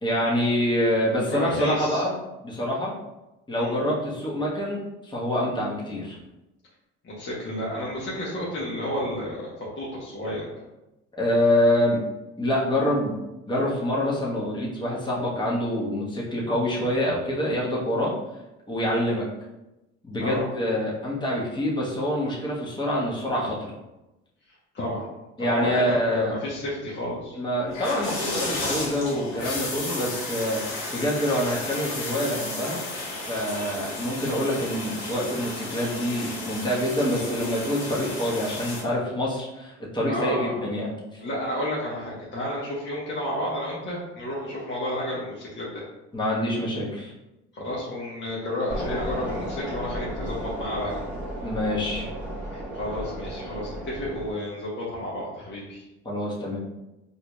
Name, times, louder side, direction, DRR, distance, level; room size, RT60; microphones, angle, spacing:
voice 1, 0.0-2.1 2.4-3.0 3.5-6.2 11.1-12.0 12.4-13.1 13.5-18.1 18.7-19.3 20.0-23.7 25.4-26.4 27.4-30.6 30.9-32.8 33.1-41.0 46.1-47.1 51.4-52.1 56.0-56.6, left 1 dB, 15° left, -5 dB, 1.2 m, -26 dB
voice 2, 1.3-2.0 3.5-3.7 7.0-10.5 18.9-19.1 20.2-20.5 24.7-25.1 25.4-27.4 40.1-40.6 41.2-45.8 47.5-51.0 52.5-55.8, left 1 dB, 35° left, -6 dB, 1.0 m, -31 dB
sound 1, 27.7-38.8, left 2 dB, 90° left, 1.1 m, -33 dB
sound 2, 48.7-54.3, equal, 5° right, 1.4 m, -34 dB
4.3 x 2.7 x 2.3 m, 0.97 s
supercardioid pair, 70°, 34 cm